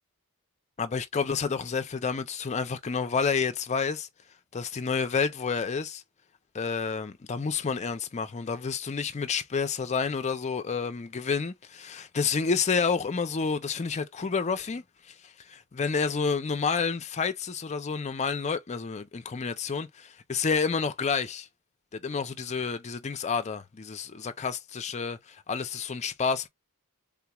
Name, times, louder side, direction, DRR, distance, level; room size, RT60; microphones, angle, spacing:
voice 1, 0.8-4.1 4.5-6.0 6.5-14.8 15.5-21.5 21.9-26.5, left 5 dB, 30° left, 0.5 m, -29 dB
3.6 x 3.0 x 2.3 m
head